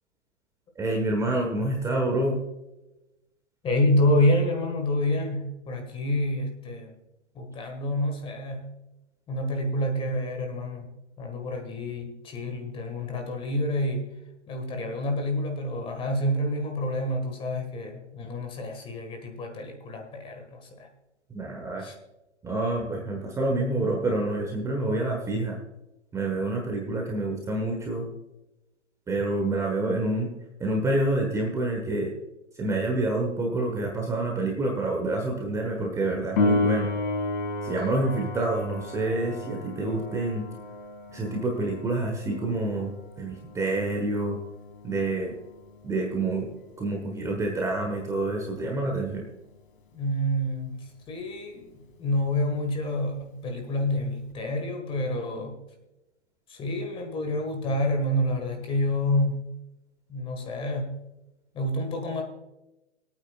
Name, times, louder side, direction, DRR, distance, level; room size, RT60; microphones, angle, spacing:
voice 1, 0.8-2.4 21.3-21.9 22.4-25.6 26.1-28.0 29.1-30.3 30.6-32.1 32.6-36.9 37.6-40.5 41.1-42.9 43.2-44.4 44.8-45.3 45.8-46.5 46.8-49.3, right 2 dB, 10° right, 0 dB, 1.2 m, -27 dB
voice 2, 3.6-6.9 7.3-8.7 9.3-10.9 11.2-14.1 14.5-20.9 21.8-21.9 49.9-55.6 56.5-59.5 60.1-61.0 61.5-62.2, left 1 dB, 15° left, 3 dB, 1.6 m, -28 dB
Piano, 36.4-46.8 54.3-54.4, left 2 dB, 45° left, 2.2 m, -32 dB
23.0 x 8.9 x 2.4 m, 0.98 s
hypercardioid pair, 140°, 36 cm